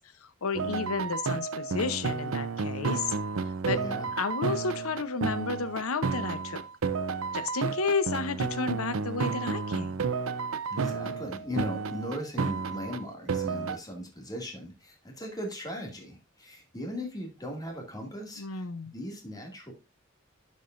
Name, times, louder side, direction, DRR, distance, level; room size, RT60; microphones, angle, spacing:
voice 1, 0.0-3.1 3.7-3.8 4.2-6.6 7.3-10.0 18.4-18.9, left 4 dB, 85° left, 0.8 m, -32 dB
sound 1, 0.5-13.8, right 4 dB, 70° right, 0.6 m, -31 dB
voice 2, 3.7-4.1 10.7-19.7, equal, 20° left, 2.3 m, -38 dB
11.5 x 5.3 x 2.5 m
head